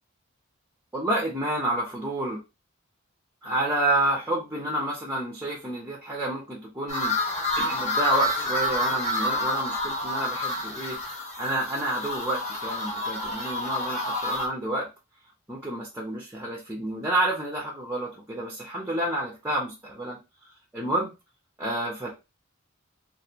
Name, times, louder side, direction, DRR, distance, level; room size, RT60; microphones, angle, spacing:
voice 1, 0.9-2.4 3.4-7.1 7.6-11.0 11.4-14.9 15.5-20.2 20.7-21.1 21.6-22.1, right 1 dB, 10° right, -2 dB, 0.7 m, -29 dB
sound 1, 6.9-14.5, left 1 dB, 35° left, 1.1 m, -29 dB
3.1 x 2.6 x 2.8 m, 0.26 s
head